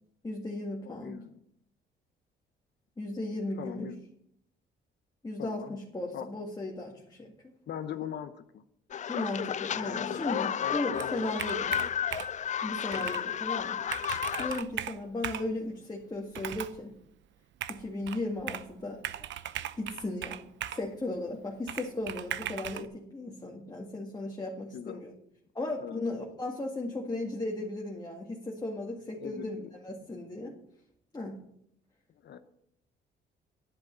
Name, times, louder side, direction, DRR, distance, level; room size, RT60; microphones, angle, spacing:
voice 1, 0.2-1.2 3.0-3.9 5.2-7.3 9.1-11.8 12.6-13.8 14.4-16.9 17.7-19.0 19.8-25.1 25.6-29.6 29.8-30.6 31.1-31.4, left 2 dB, 20° left, -1 dB, 1.9 m, -36 dB
voice 2, 0.8-1.4 3.6-4.1 5.4-5.8 6.1-6.3 7.7-8.6 9.8-10.2 10.6-11.9 13.0-13.2 24.7-25.0 25.8-26.0 29.2-29.7 32.2-32.4, left 9 dB, 60° left, 9 dB, 0.8 m, -41 dB
sound 1, 8.9-14.6, left 9 dB, 40° left, 0.4 m, -32 dB
Computer keyboard, 10.9-12.5 12.9-13.2 13.6-13.7 13.9-15.5 16.3-16.8 17.6-18.7 19.0-20.9 21.7-22.9, right 11 dB, 70° right, 0.7 m, -38 dB
10.5 x 8.0 x 6.7 m, 0.73 s
cardioid pair, 90°, 20 cm